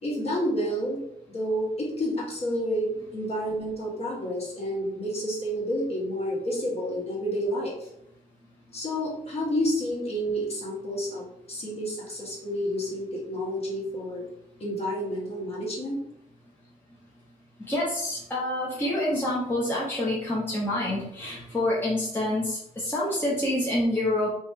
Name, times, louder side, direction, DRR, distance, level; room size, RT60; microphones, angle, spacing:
voice 1, 0.0-1.0 1.3-7.9 8.7-14.2 14.6-16.0, equal, 40° left, -4 dB, 1.4 m, -30 dB
voice 2, 17.7-24.3, left 1 dB, 15° left, -6 dB, 0.8 m, -27 dB
2.9 x 2.9 x 3.5 m, 0.76 s
wide cardioid pair, 150°, 16 cm